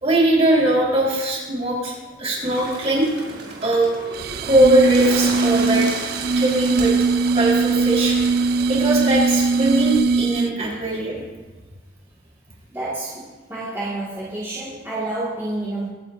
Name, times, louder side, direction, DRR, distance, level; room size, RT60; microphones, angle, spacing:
voice 1, 0.0-1.9 2.2-3.1 3.6-3.9 4.4-5.9 6.4-6.9 7.3-8.2 8.7-11.2, right 1 dB, 35° right, -4 dB, 4.3 m, -20 dB
Bird, 2.4-10.0, right 3 dB, 70° right, 3.0 m, -34 dB
sound 1, 4.1-10.7, right 4 dB, 55° right, 0.4 m, -20 dB
voice 2, 12.7-15.9, right 2 dB, 15° right, -10 dB, 2.1 m, -29 dB
24.0 x 9.2 x 2.7 m, 1.3 s
head